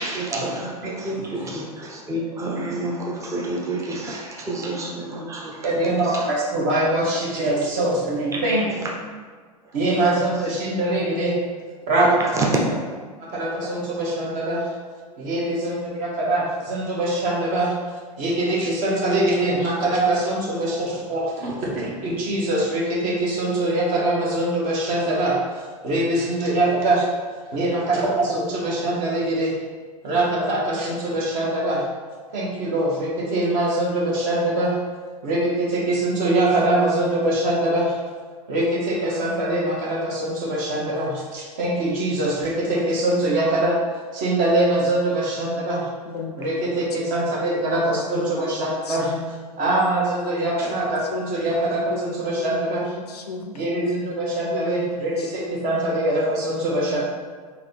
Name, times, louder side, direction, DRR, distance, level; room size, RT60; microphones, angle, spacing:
voice 1, 0.0-6.3 8.3-8.9 10.0-10.5 12.2-12.9 13.6-13.8, right 2 dB, 15° right, -1 dB, 0.8 m, -29 dB
voice 2, 5.6-8.6 9.7-11.3 11.9-12.3 13.2-14.7 15.2-17.7 18.2-25.3 25.8-27.1 27.5-29.5 30.0-31.9 32.3-34.7 35.2-38.0 38.5-43.8 44.1-45.9 46.4-49.1 49.6-52.9 53.5-57.0, right 1 dB, 45° right, -3 dB, 1.4 m, -23 dB
voice 3, 46.0-46.5 47.1-49.3 50.4-50.8 51.1-54.1 54.5-55.3 56.8-57.0, left 4 dB, 80° left, 4 dB, 0.5 m, -35 dB
3.9 x 2.8 x 4.4 m, 1.5 s
figure-of-eight pair, 85°, 20 cm